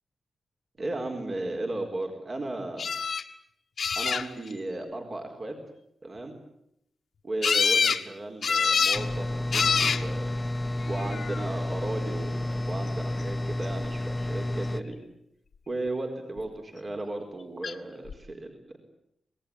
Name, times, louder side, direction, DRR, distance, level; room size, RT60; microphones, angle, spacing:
voice 1, 0.8-2.9 4.0-5.6 6.0-6.3 7.2-9.3 9.5-10.3 10.9-15.0 15.7-18.8, right 2 dB, 40° right, 3 dB, 4.3 m, -35 dB
sound 1, 2.8-3.2 3.8-4.5 7.4-8.0 8.4-9.0 9.5-10.0 10.9-11.4 17.6-17.7 18.1-18.2, left 6 dB, 60° left, 1.6 m, -25 dB
sound 2, 8.9-14.8, left 1 dB, 20° left, 1.4 m, -31 dB
26.0 x 19.5 x 8.8 m, 0.78 s
wide cardioid pair, 100°, 0 cm